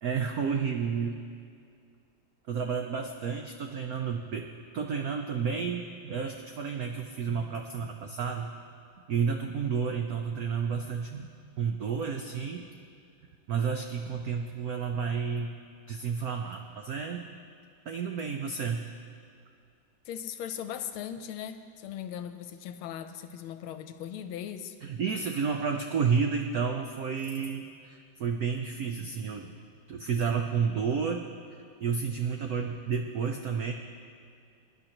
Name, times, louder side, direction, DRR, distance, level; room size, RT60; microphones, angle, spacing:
voice 1, 0.0-1.2 2.5-4.5 4.7-8.5 9.1-11.3 11.6-12.6 13.5-15.5 15.9-17.2 17.9-18.8 24.8-29.5 29.9-31.3 31.8-33.7, right 6 dB, 80° right, 4 dB, 0.8 m, -31 dB
voice 2, 20.1-24.7, left 9 dB, 80° left, 9 dB, 1.5 m, -39 dB
23.0 x 10.5 x 3.0 m, 2.3 s
omnidirectional pair, 2.4 m